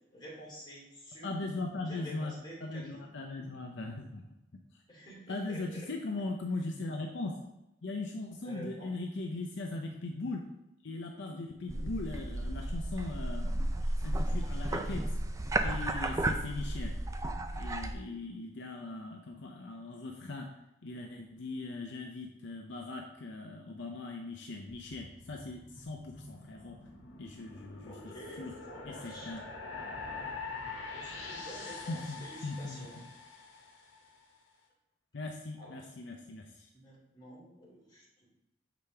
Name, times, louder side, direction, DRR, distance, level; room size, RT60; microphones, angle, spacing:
voice 1, 0.1-1.4 1.7-3.1 4.9-5.9 8.4-8.9 11.6-11.9 27.8-29.3 30.9-33.0 35.6-35.9 36.7-38.4, equal, 25° left, -6 dB, 2.6 m, -49 dB
voice 2, 1.2-2.3 2.6-4.2 5.3-7.4 7.8-10.4 10.8-13.7 14.0-15.0 15.6-16.9 17.5-20.5 20.8-26.8 27.2-28.0 28.4-28.5 28.9-29.4 31.9-32.9 35.1-36.7, left 2 dB, 65° left, 2 dB, 0.6 m, -39 dB
sound 1, 11.7-17.9, right 1 dB, 15° right, 0.4 m, -33 dB
sound 2, 24.7-34.1, left 4 dB, 85° left, 1.3 m, -45 dB
6.9 x 5.1 x 3.4 m, 0.90 s
head